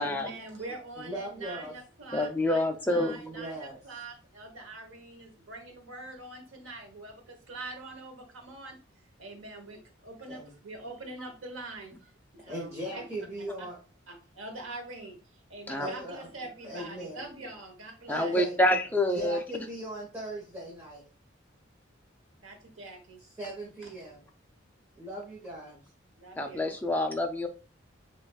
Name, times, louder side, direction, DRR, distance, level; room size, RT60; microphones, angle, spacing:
voice 1, 0.0-8.8 9.2-13.0 14.1-15.2 15.5-18.4 22.4-23.2 23.8-23.9 26.2-26.7, right 2 dB, 85° right, 4 dB, 1.1 m, -44 dB
voice 2, 1.0-1.7 3.1-3.8 10.3-10.5 12.4-13.8 15.8-16.3 16.6-17.2 18.1-18.6 19.1-21.0 23.2-24.2 25.0-25.8, right 1 dB, 15° right, -5 dB, 1.1 m, -39 dB
voice 3, 2.1-3.2 15.7-15.9 18.1-19.4 26.4-27.5, left 1 dB, 10° left, 4 dB, 0.4 m, -27 dB
5.7 x 2.5 x 2.3 m, 0.36 s
head